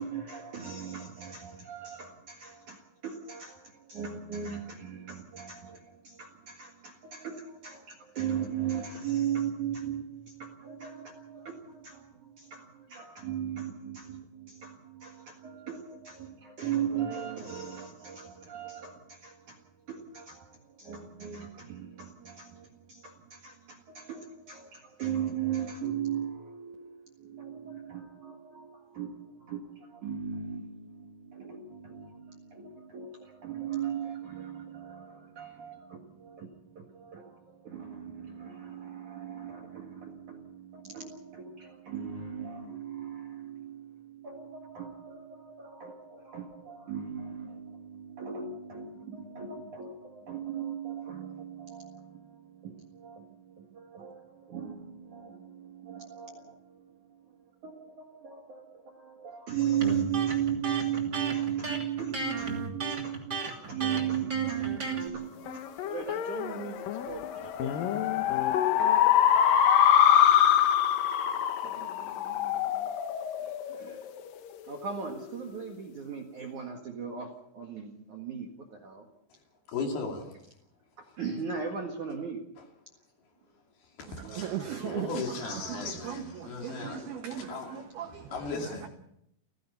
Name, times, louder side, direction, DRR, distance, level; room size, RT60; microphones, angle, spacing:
voice 1, 0.0-67.9 71.6-72.9 73.4-74.0 74.6-79.1 81.0-82.4, right 8 dB, 55° right, 2.3 m, -37 dB
Electric guitar, 59.8-65.1, right 2 dB, 30° right, 2.4 m, -35 dB
sound 1, 65.5-74.3, left 10 dB, 85° left, 1.9 m, -24 dB
voice 2, 79.7-80.4 83.5-87.9 88.3-88.9, left 4 dB, 55° left, 4.2 m, -37 dB
voice 3, 84.2-88.3, right 9 dB, 75° right, 2.3 m, -38 dB
30.0 x 15.0 x 5.7 m
omnidirectional pair, 5.7 m